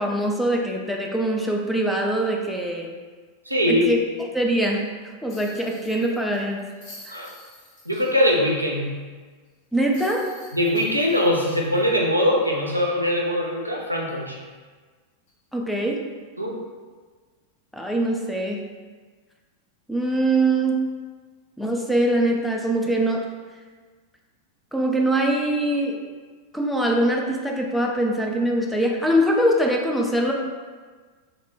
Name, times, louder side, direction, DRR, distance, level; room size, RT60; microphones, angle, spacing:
voice 1, 0.0-2.9 3.7-4.0 4.3-4.9 5.2-6.6 7.1-7.3 9.7-10.3 15.5-16.0 17.7-18.6 19.9-20.8 21.6-23.3 24.7-26.0 26.5-30.3, right 1 dB, ahead, 0 dB, 0.3 m, -23 dB
voice 2, 3.5-3.9 7.1-7.3 7.8-9.0 10.5-14.4 16.4-16.6, left 1 dB, 85° right, -1 dB, 0.4 m, -22 dB
sound 1, 5.3-8.5 8.8-8.9 9.9-12.6 13.0-13.1 15.3-15.5, left 2 dB, 40° left, 1.1 m, -48 dB
2.3 x 2.1 x 3.4 m, 1.5 s
figure-of-eight pair, 90°, 0 cm